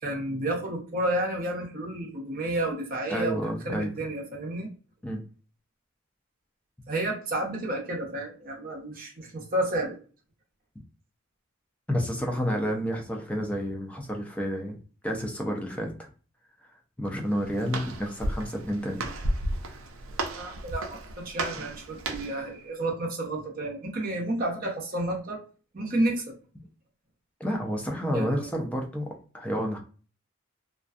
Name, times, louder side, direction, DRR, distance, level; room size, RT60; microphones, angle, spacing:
voice 1, 0.0-4.7 6.9-10.0 20.3-25.4 25.7-26.4 28.1-28.5, right 1 dB, 45° right, 0 dB, 0.7 m, -31 dB
voice 2, 3.1-3.9 5.0-5.2 11.9-14.8 15.0-16.1 17.0-19.1 27.4-29.1 29.3-29.8, equal, 5° left, 1 dB, 0.4 m, -30 dB
Walk footsteps, 17.1-22.4, right 1 dB, 70° right, 0.4 m, -34 dB
2.5 x 2.2 x 2.4 m, 0.38 s
head